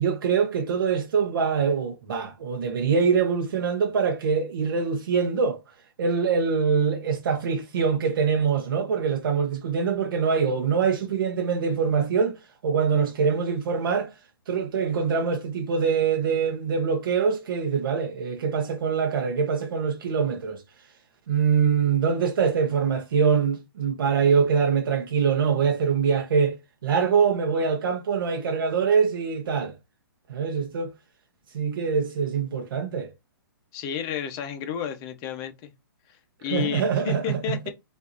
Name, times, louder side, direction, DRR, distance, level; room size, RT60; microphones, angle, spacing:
voice 1, 0.0-5.6 6.0-12.3 12.6-14.1 14.5-20.6 21.3-26.6 26.8-29.7 30.3-30.9 31.5-33.1 36.5-37.4, right 6 dB, 65° right, 0.9 m, -24 dB
voice 2, 33.7-35.7 36.4-37.7, left 9 dB, 30° left, 0.9 m, -31 dB
5.0 x 2.7 x 2.7 m
hypercardioid pair, 145°, 12 cm